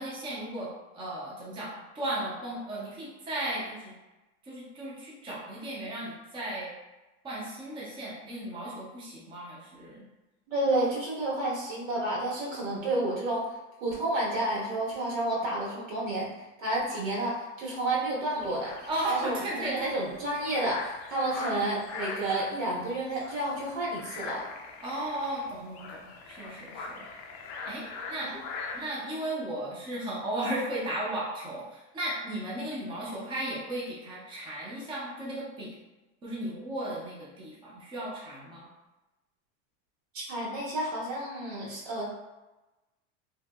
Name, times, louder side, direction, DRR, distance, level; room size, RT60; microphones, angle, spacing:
voice 1, 0.0-3.9 4.4-6.7 7.2-10.1 18.9-19.9 24.8-27.0 27.6-28.3 28.7-35.7 36.2-38.7, right 1 dB, 15° right, -6 dB, 0.5 m, -35 dB
voice 2, 10.5-16.3 16.6-24.5 28.2-28.3 40.1-42.1, right 1 dB, 85° right, -6 dB, 1.5 m, -30 dB
sound 1, 18.4-28.9, left 4 dB, 40° left, 0.4 m, -42 dB
3.0 x 2.8 x 2.3 m, 1.1 s
supercardioid pair, 150°, 38 cm